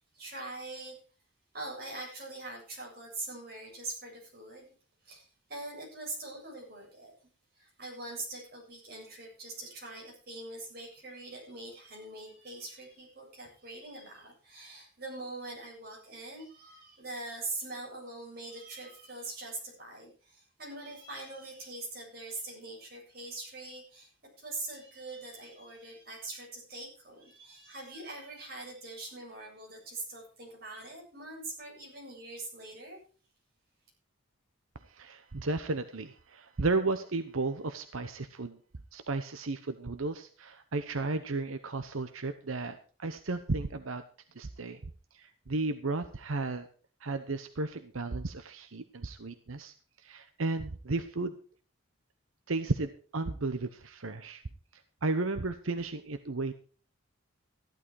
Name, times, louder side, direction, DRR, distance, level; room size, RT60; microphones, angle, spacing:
voice 1, 0.1-1.0 1.5-4.7 5.0-7.1 7.6-24.1 24.4-33.0, right 2 dB, 50° right, -1 dB, 7.9 m, -43 dB
voice 2, 34.7-38.6 38.9-44.0 44.3-44.8 45.1-46.7 47.0-51.3 52.5-54.4 54.7-56.5, right 3 dB, 85° right, 10 dB, 0.9 m, -34 dB
15.0 x 11.5 x 4.8 m, 0.38 s
head